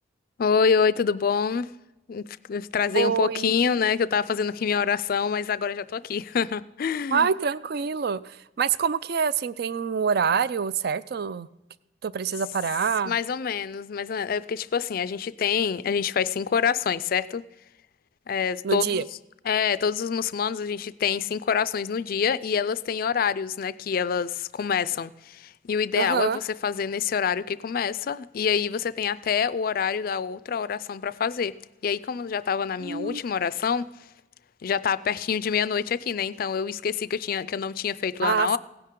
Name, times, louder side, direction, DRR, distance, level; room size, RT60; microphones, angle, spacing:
voice 1, 0.4-1.7 2.1-7.3 13.1-17.4 18.3-19.0 19.5-31.5 31.8-33.8 34.6-38.6, left 6 dB, 50° left, 17 dB, 0.4 m, -26 dB
voice 2, 2.9-3.7 7.1-11.5 12.0-13.2 18.6-19.0 25.9-26.4 32.8-33.2 38.2-38.6, right 6 dB, 55° right, 17 dB, 0.4 m, -26 dB
17.0 x 10.0 x 3.7 m, 1.0 s
head